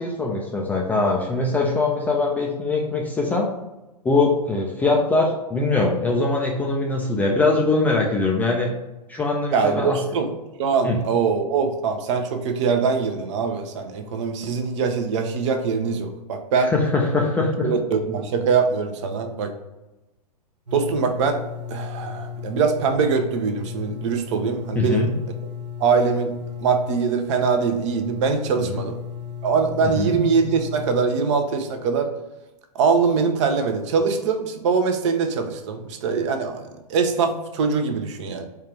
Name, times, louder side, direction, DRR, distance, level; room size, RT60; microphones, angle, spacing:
voice 1, 0.0-3.5 4.0-8.7 9.1-10.0 10.8-11.0 16.5-17.7 24.8-25.1 28.6-28.8 29.8-30.1, left 3 dB, 10° left, -1 dB, 0.3 m, -22 dB
voice 2, 9.5-10.3 10.6-16.7 17.6-19.5 20.7-21.4 21.7-25.1 25.8-26.3 26.6-29.0 29.4-32.1 32.7-36.6 36.9-38.5, right 5 dB, 45° right, 6 dB, 0.6 m, -22 dB
sound 1, 20.7-31.0, left 8 dB, 90° right, 1.0 m, -35 dB
4.5 x 2.4 x 3.3 m, 1.0 s
figure-of-eight pair, 110°, 21 cm